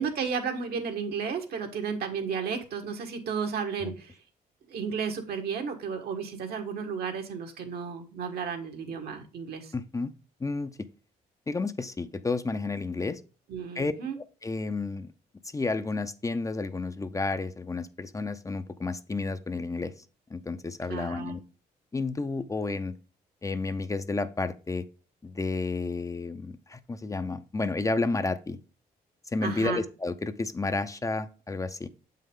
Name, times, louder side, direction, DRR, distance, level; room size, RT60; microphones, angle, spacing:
voice 1, 0.0-4.2 4.7-9.7 13.5-14.2 20.9-21.3 29.4-29.8, right 6 dB, 75° right, 4 dB, 1.5 m, -33 dB
voice 2, 9.7-10.1 10.4-10.9 11.5-13.2 13.7-15.1 15.5-19.9 20.3-21.4 21.9-22.9 23.4-24.8 25.2-28.6 29.3-31.9, left 3 dB, 20° left, 11 dB, 0.5 m, -31 dB
7.4 x 5.5 x 3.7 m, 0.34 s
cardioid pair, 85°, 16 cm